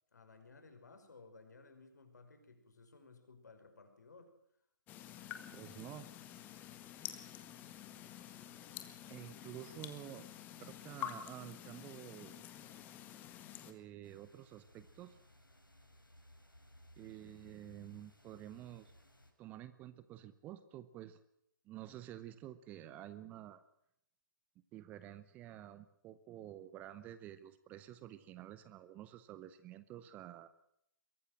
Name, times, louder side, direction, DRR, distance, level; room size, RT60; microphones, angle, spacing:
voice 1, 0.1-4.3, left 3 dB, 60° left, 7 dB, 5.6 m, -58 dB
sound 1, 4.9-13.7, left 11 dB, 15° left, 1.8 m, -49 dB
voice 2, 5.5-6.1 9.1-10.3 10.6-12.4 13.7-15.2 17.0-18.9 19.4-21.2 21.6-23.6 24.7-30.5, right 12 dB, 15° right, 14 dB, 0.8 m, -50 dB
sound 2, 14.0-19.3, equal, 90° left, 5.9 m, -62 dB
23.0 x 18.0 x 7.8 m, 0.74 s
figure-of-eight pair, 135°, 11 cm